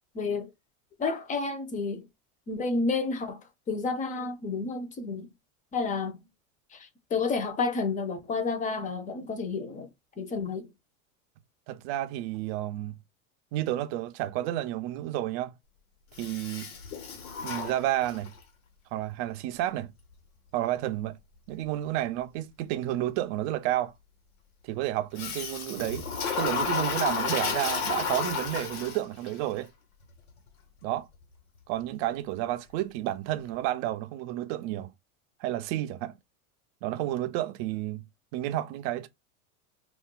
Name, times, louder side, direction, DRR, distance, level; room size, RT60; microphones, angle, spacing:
voice 1, 0.1-0.5 1.0-2.0 2.5-3.4 3.7-5.3 5.7-6.2 6.7-9.9 10.2-10.7, left 4 dB, 20° left, 0.6 m, -30 dB
voice 2, 11.7-13.0 13.5-15.5 16.2-16.7 17.4-18.3 18.9-19.9 20.5-21.2 21.5-23.9 24.6-26.1 26.4-29.7 30.8-31.1 31.7-34.9 35.4-36.1 36.8-38.0 38.3-39.1, right 14 dB, 50° right, 0.5 m, -31 dB
Toilet flush, 16.1-18.4 25.2-29.3, left 5 dB, 85° left, 1.2 m, -32 dB
2.5 x 2.2 x 3.7 m
supercardioid pair, 120°, 42 cm